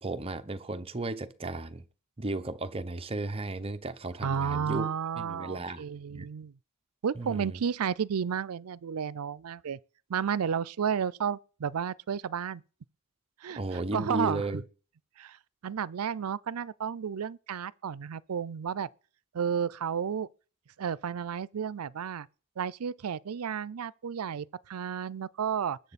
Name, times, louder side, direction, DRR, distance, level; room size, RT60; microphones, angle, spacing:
voice 1, 0.0-1.8 2.2-4.9 5.2-6.3 7.2-7.6 13.5-14.6, right 2 dB, 25° right, 0.8 m, -35 dB
voice 2, 4.2-6.5 7.0-9.8 10.1-12.6 13.4-14.4 15.2-15.4 15.6-18.9 19.3-20.3 20.8-22.3 22.6-25.8, right 7 dB, 80° right, 0.5 m, -32 dB
20.5 x 7.7 x 4.2 m
head